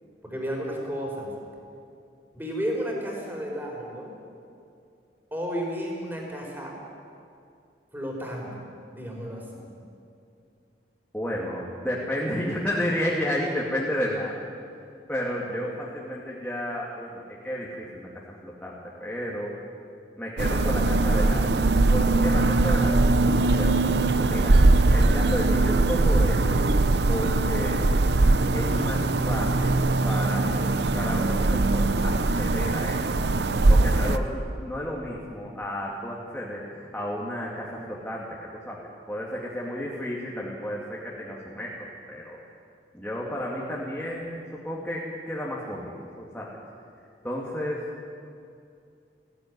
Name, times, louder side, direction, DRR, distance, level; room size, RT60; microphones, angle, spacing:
voice 1, 0.2-1.3 2.3-4.1 5.3-6.8 7.9-8.6 8.9-9.7, equal, 10° right, -1 dB, 4.6 m, -32 dB
voice 2, 11.1-14.3 14.9-19.5 20.2-21.5 21.9-24.7 24.9-26.6 27.1-27.9 28.5-33.2 33.7-42.4 42.9-46.6 47.2-47.9, equal, 10° left, -5 dB, 2.4 m, -32 dB
sound 1, 20.4-34.2, right 2 dB, 70° right, 0.8 m, -21 dB
19.0 x 16.0 x 9.6 m, 2.5 s
head